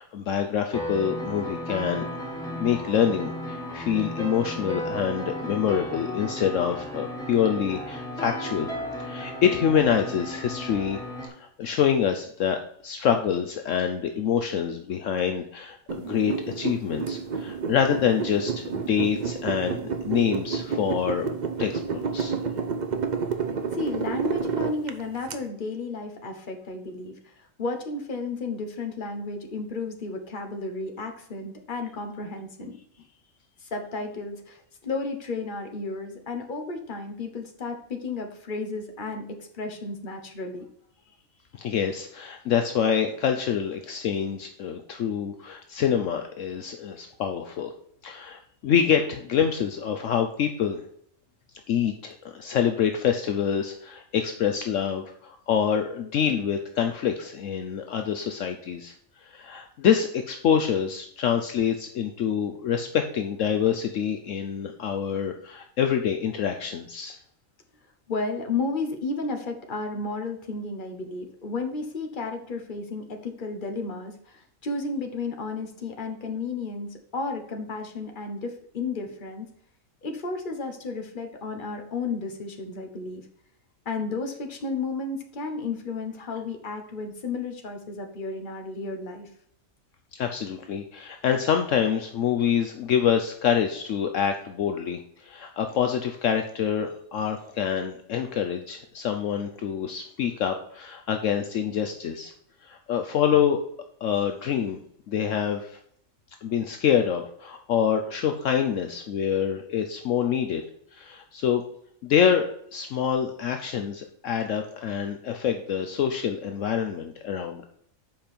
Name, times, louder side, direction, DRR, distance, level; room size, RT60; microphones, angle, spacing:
voice 1, 0.0-2.1 2.6-8.7 9.0-11.0 11.4-21.3 21.6-22.3 41.5-47.7 48.0-50.8 51.7-58.9 59.2-67.2 90.1-102.3 102.6-103.6 104.0-104.8 105.1-105.8 106.4-110.6 110.9-111.6 112.0-117.6, left 8 dB, 70° left, 5 dB, 1.0 m, -26 dB
sound 1, 0.7-11.3, equal, 5° left, 1.6 m, -34 dB
sound 2, 15.9-25.3, right 5 dB, 45° right, 0.7 m, -30 dB
voice 2, 23.7-32.7 33.6-40.7 68.1-79.5 80.0-83.2 83.8-89.3, left 3 dB, 40° left, 4 dB, 1.3 m, -33 dB
7.7 x 5.1 x 4.4 m, 0.67 s
omnidirectional pair, 1.4 m